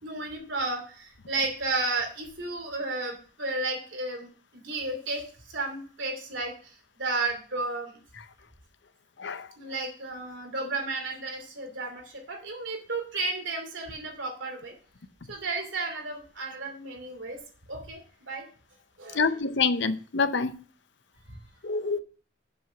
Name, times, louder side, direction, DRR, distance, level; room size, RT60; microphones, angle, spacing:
voice 1, 0.0-5.2 5.5-6.7 7.0-8.0 9.6-14.7 15.3-17.4 17.7-18.4 19.0-19.4 21.3-21.4, right 3 dB, 75° right, 2.7 m, -33 dB
voice 2, 19.2-20.5 21.6-22.0, left 4 dB, 65° left, 0.6 m, -26 dB
7.4 x 6.3 x 5.8 m
head